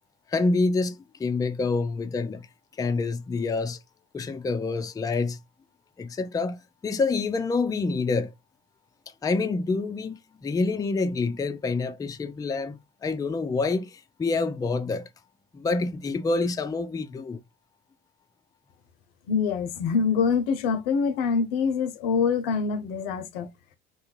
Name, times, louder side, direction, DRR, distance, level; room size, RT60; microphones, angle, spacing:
voice 1, 0.3-2.5 2.8-3.8 4.1-5.4 6.0-8.3 9.2-15.1 15.5-17.4, left 3 dB, 10° left, 0.4 m, -27 dB
voice 2, 19.3-23.5, left 5 dB, 75° left, 0.6 m, -25 dB
2.6 x 2.3 x 3.0 m
hypercardioid pair, 65°, 29 cm